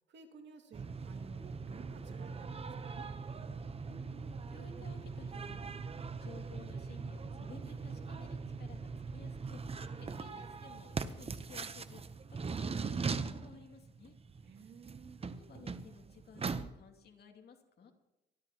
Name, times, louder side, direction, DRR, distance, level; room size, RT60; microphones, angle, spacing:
voice 1, 0.1-3.1 14.4-15.2, right 5 dB, 65° right, 4 dB, 2.4 m, -54 dB
sound 1, 0.7-16.7, right 4 dB, 30° right, 0.9 m, -41 dB
voice 2, 3.9-5.8 6.2-14.1 15.2-17.9, left 5 dB, 55° left, 3 dB, 2.5 m, -56 dB
24.5 x 12.5 x 3.0 m, 0.93 s
cardioid pair, 90°, 20 cm